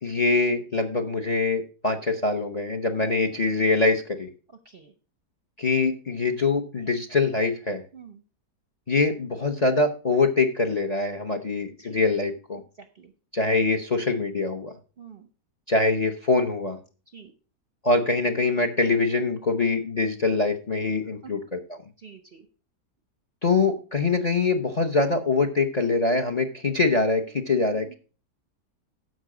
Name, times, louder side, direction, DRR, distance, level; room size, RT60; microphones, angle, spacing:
voice 1, 0.0-4.3 5.6-7.8 8.9-12.6 13.3-14.7 15.7-16.8 17.8-21.8 23.4-27.9, left 3 dB, 35° left, 8 dB, 0.7 m, -24 dB
voice 2, 15.0-15.3 17.1-17.3 21.2-21.3 22.0-22.5 27.3-27.9, right 6 dB, 50° right, 9 dB, 0.7 m, -47 dB
14.0 x 5.4 x 4.9 m, 0.36 s
omnidirectional pair, 1.8 m